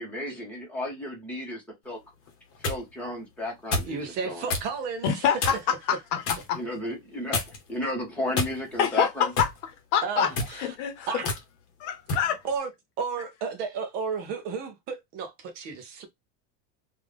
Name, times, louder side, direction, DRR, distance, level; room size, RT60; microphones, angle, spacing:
voice 1, 0.0-2.0 2.6-4.4 6.5-7.4 7.7-9.3, left 1 dB, 5° left, 1.0 m, -33 dB
sound 1, 2.3-2.8 3.7-4.0 4.5-4.7 5.4-5.7 6.2-6.5 7.3-7.7 8.3-8.9 9.4-9.6 10.2-10.6 11.2-11.4 12.1-12.3, left 3 dB, 35° left, 0.9 m, -29 dB
voice 2, 3.9-5.5 10.0-10.8 11.1-11.3 12.4-12.7 13.0-16.1, right 5 dB, 25° right, 0.3 m, -33 dB
voice 3, 5.0-5.6 5.9-6.2 6.5-6.6 8.8-10.3 10.6-10.9 11.8-12.4, left 8 dB, 60° left, 0.9 m, -26 dB
3.5 x 2.4 x 3.2 m
cardioid pair, 180°, 40 cm